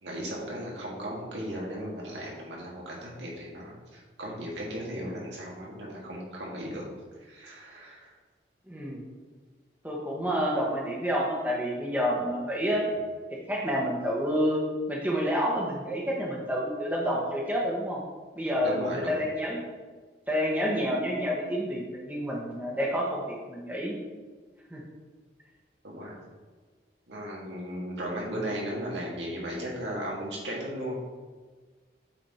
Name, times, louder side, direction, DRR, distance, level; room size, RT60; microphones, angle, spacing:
voice 1, 0.0-6.9 7.2-8.1 12.7-12.8 18.6-19.2 25.8-26.2 27.1-31.0, equal, 80° right, -3 dB, 1.9 m, -36 dB
voice 2, 8.7-9.0 9.8-12.8 13.3-18.0 18.4-19.6 20.3-24.0 24.7-24.8, equal, 10° right, -3 dB, 1.0 m, -29 dB
8.8 x 4.2 x 4.3 m, 1.4 s
head